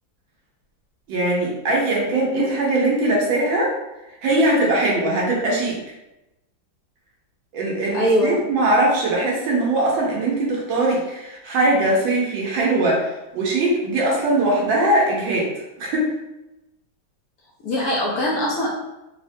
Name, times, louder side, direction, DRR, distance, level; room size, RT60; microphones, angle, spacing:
voice 1, 1.1-3.7 4.2-5.8 7.5-15.5 15.8-16.1, right 1 dB, 85° right, -3 dB, 1.6 m, -21 dB
voice 2, 7.9-8.4 17.6-18.7, equal, 70° left, -4 dB, 0.9 m, -21 dB
3.8 x 2.1 x 2.6 m, 0.95 s
omnidirectional pair, 2.1 m